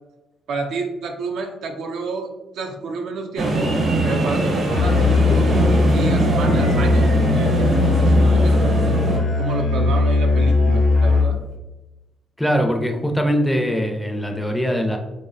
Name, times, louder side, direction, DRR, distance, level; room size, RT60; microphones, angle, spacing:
voice 1, 0.5-3.7 4.0-7.7 8.0-9.0 9.4-11.4, right 3 dB, 75° right, 4 dB, 0.4 m, -29 dB
sound 1, 3.4-9.2, right 2 dB, 55° right, 0.8 m, -21 dB
Musical instrument, 4.7-11.5, left 3 dB, 60° left, 0.5 m, -18 dB
voice 2, 12.4-15.0, equal, 5° left, 3 dB, 0.4 m, -21 dB
2.6 x 2.0 x 2.4 m, 1.0 s
cardioid pair, 90°, 0 cm